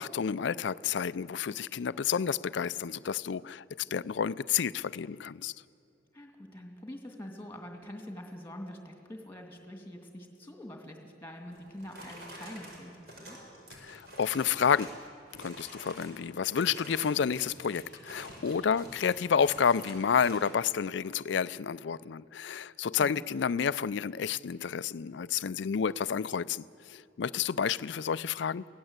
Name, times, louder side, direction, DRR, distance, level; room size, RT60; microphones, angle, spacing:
voice 1, 0.0-5.5 13.8-14.9 15.4-28.6, left 7 dB, 70° left, 17 dB, 0.4 m, -30 dB
voice 2, 6.1-13.4 17.1-17.3 23.0-23.2, left 1 dB, 10° left, 3 dB, 2.3 m, -45 dB
sound 1, 11.5-15.0 15.3-16.2 16.5-20.6, right 1 dB, 55° right, 4.9 m, -48 dB
23.0 x 17.0 x 8.1 m, 2.6 s
head